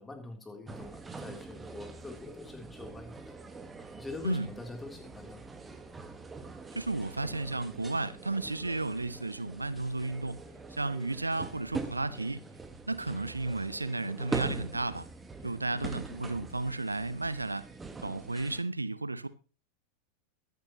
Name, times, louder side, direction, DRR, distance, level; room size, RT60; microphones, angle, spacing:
voice 1, 0.0-3.4 4.0-5.4, left 3 dB, 10° left, 3.2 m, -44 dB
sound 1, 0.7-18.6, right 4 dB, 15° right, 1.4 m, -43 dB
voice 2, 6.7-10.4 10.7-12.4 12.9-15.1 15.4-17.6 18.0-19.3, right 2 dB, 80° right, 0.8 m, -33 dB
22.5 x 9.3 x 3.0 m
figure-of-eight pair, 90°, 0 cm